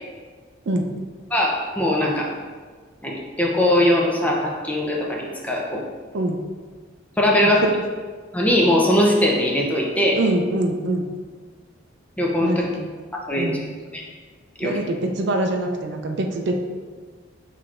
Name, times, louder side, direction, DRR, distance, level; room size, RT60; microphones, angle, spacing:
voice 1, 1.3-2.3 3.0-5.8 7.2-7.7 8.3-10.2 12.2-12.6 13.3-13.5 13.9-14.0 14.6-14.7, left 1 dB, 10° left, -2 dB, 0.5 m, -20 dB
voice 2, 10.2-11.1 12.4-12.9 13.4-13.6 14.6-16.6, right 2 dB, 60° right, 3 dB, 0.4 m, -24 dB
5.9 x 3.2 x 2.4 m, 1.5 s
head